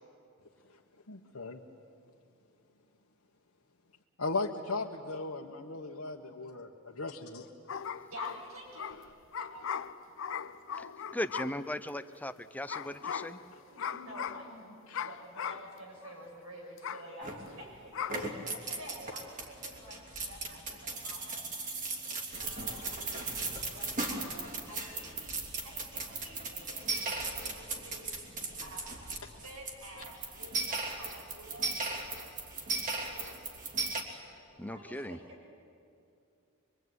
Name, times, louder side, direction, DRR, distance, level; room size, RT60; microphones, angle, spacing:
voice 1, 1.1-1.6 4.2-7.5 14.9-15.0 18.1-18.3 22.7-22.8, left 3 dB, 80° left, -3 dB, 1.4 m, -37 dB
sound 1, 7.7-11.9 12.7-13.5 13.8-14.5 14.9-15.7 16.0-16.1 16.8-17.1 17.9-18.3, left 7 dB, 65° left, 0.7 m, -39 dB
voice 2, 8.1-9.0 9.4-9.7 13.5-17.9 18.3-22.0 22.4-22.8 23.2-25.3 25.6-28.3 28.6-31.8 32.9-33.4 34.7-35.2, right 1 dB, 80° right, 0 dB, 7.0 m, -50 dB
voice 3, 11.1-13.4 33.2-33.3 34.6-35.2, left 1 dB, 10° left, 10 dB, 0.7 m, -38 dB
sound 2, 17.2-17.7 18.0-34.0, right 3 dB, 40° right, 3.1 m, -37 dB
24.5 x 24.0 x 9.6 m, 2.6 s
head